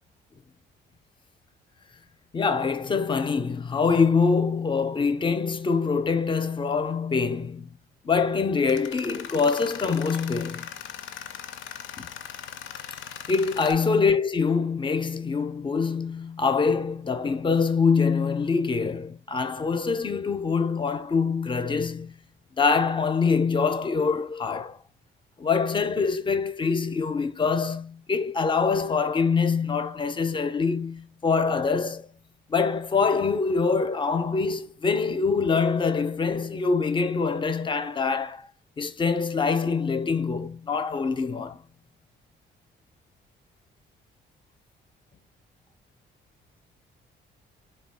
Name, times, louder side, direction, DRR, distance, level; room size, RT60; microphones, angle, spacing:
voice 1, 2.3-7.7 8.0-10.7 12.0-12.1 13.3-22.2 22.6-24.8 25.4-32.1 32.5-38.5 38.8-41.6, left 5 dB, 25° left, 0.5 m, -24 dB
Tools, 8.6-13.7, left 9 dB, 75° left, 0.5 m, -39 dB
3.5 x 2.3 x 3.5 m
cardioid pair, 90°, 20 cm